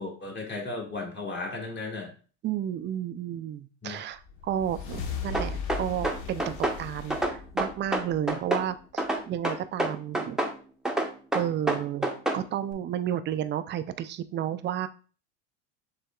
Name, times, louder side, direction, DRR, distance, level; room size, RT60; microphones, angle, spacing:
voice 1, 0.0-2.1 3.8-4.0, left 3 dB, 30° left, 0 dB, 1.7 m, -35 dB
voice 2, 2.4-10.4 11.3-14.9, right 10 dB, 30° right, 13 dB, 0.4 m, -32 dB
sound 1, 4.2-8.8, left 5 dB, 60° left, 1.2 m, -37 dB
sound 2, 5.3-6.8 7.1-8.7 9.0-10.6 10.9-12.4, right 1 dB, ahead, 0.8 m, -27 dB
6.6 x 3.4 x 2.3 m, 0.38 s
supercardioid pair, 95°, 36 cm